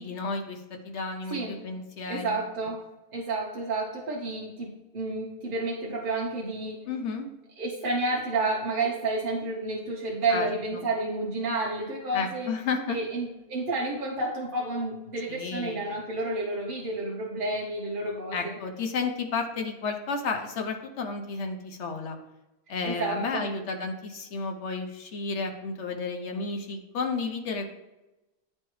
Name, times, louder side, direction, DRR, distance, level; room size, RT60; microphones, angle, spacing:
voice 1, 0.0-2.4 6.9-7.3 10.3-10.5 10.7-10.8 12.1-13.0 15.3-16.0 18.3-22.2 22.7-27.7, left 4 dB, 60° left, 4 dB, 0.8 m, -32 dB
voice 2, 1.3-1.6 2.0-2.8 3.1-6.9 7.6-12.5 12.9-18.5 22.8-23.5, right 2 dB, 45° right, -3 dB, 0.7 m, -30 dB
9.6 x 3.3 x 3.0 m, 1.0 s
omnidirectional pair, 1.7 m